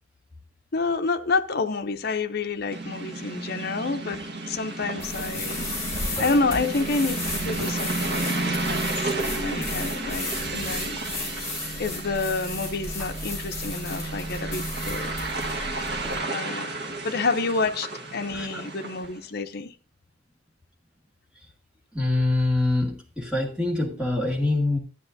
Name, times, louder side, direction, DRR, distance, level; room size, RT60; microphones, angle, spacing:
voice 1, 0.7-4.2 4.5-5.6 6.2-11.0 11.8-15.1 16.3-19.7, left 3 dB, 50° left, 0.7 m, -29 dB
sound 1, 2.7-19.2, right 2 dB, 55° right, 1.4 m, -32 dB
sound 2, 5.0-16.2, left 2 dB, 15° left, 4.1 m, -34 dB
voice 2, 21.9-24.8, left 2 dB, 5° right, 2.2 m, -24 dB
12.0 x 9.7 x 2.7 m
head